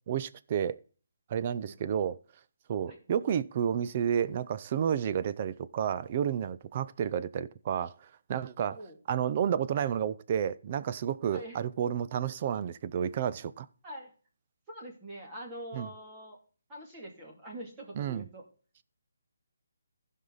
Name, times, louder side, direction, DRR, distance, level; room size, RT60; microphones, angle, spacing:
voice 1, 0.1-0.8 1.3-2.2 2.7-8.8 9.1-13.7 15.7-15.9 18.0-18.2, right 8 dB, 30° right, 0.5 m, -31 dB
voice 2, 11.3-11.6 13.8-14.1 14.7-16.4 16.7-18.4, right 1 dB, 15° right, 2.4 m, -44 dB
15.0 x 5.5 x 4.0 m
hypercardioid pair, 165°, 0 cm